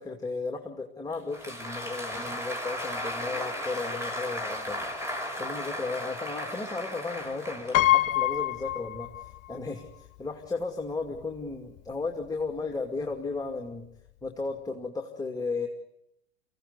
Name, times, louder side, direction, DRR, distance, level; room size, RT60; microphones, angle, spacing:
voice 1, 0.0-4.8 5.4-13.9 14.2-15.7, left 3 dB, 10° left, 3 dB, 2.4 m, -34 dB
Applause, 1.1-8.2, equal, 10° right, 5.1 m, -35 dB
Piano, 7.7-9.6 9.9-10.0 11.1-11.2 11.5-11.8, left 14 dB, 45° left, 1.0 m, -25 dB
25.0 x 16.5 x 9.7 m, 0.83 s
hypercardioid pair, 90°, 35 cm